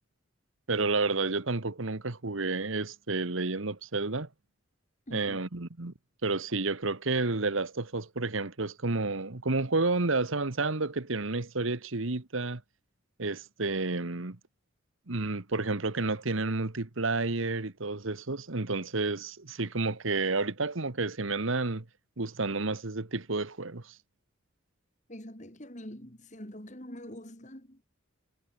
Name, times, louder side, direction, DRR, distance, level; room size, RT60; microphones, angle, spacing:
voice 1, 0.7-4.3 5.1-5.9 6.2-12.6 13.2-14.4 15.1-21.8 22.2-23.9, right 3 dB, 75° right, 1.5 m, -30 dB
voice 2, 5.1-5.4 25.1-27.8, equal, 35° left, 4.0 m, -44 dB
head